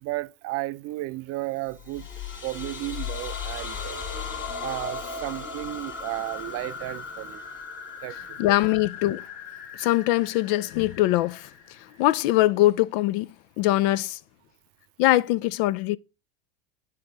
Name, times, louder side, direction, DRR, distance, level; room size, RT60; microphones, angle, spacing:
voice 1, 0.0-2.1 2.4-4.0 4.6-7.4 8.0-8.4, right 18 dB, 45° right, 0.5 m, -33 dB
sound 1, 1.7-12.3, left 5 dB, 35° left, 1.7 m, -37 dB
voice 2, 8.4-9.2 9.8-11.5 12.0-13.3 13.6-14.2 15.0-16.0, left 16 dB, 60° left, 0.5 m, -22 dB
9.7 x 4.2 x 3.9 m
hypercardioid pair, 95°, 33 cm